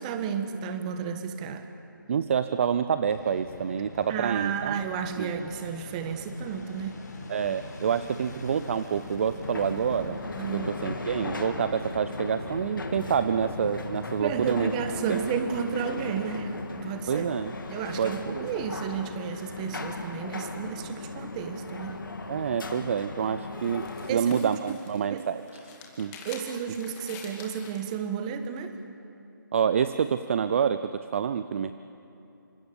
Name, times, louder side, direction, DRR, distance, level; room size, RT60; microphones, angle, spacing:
voice 1, 0.0-1.7 4.1-7.0 10.4-10.7 14.2-17.2 17.7-22.0 24.1-24.8 25.1-25.2 26.2-28.8, right 7 dB, 20° right, 9 dB, 1.3 m, -32 dB
voice 2, 2.1-4.8 5.2-5.3 7.3-10.2 10.5-14.7 15.1-15.2 17.1-17.5 18.0-18.5 22.3-26.2 29.5-31.7, right 7 dB, 35° right, 12 dB, 0.6 m, -27 dB
Fixed-wing aircraft airplane, 3.0-18.2, left 2 dB, 55° left, 4.6 m, -43 dB
sound 1, 9.4-24.1, left 3 dB, 70° left, 3.0 m, -37 dB
sound 2, 23.2-27.9, left 5 dB, 15° left, 2.4 m, -46 dB
27.5 x 25.5 x 7.1 m, 2.9 s
figure-of-eight pair, 155°, 12 cm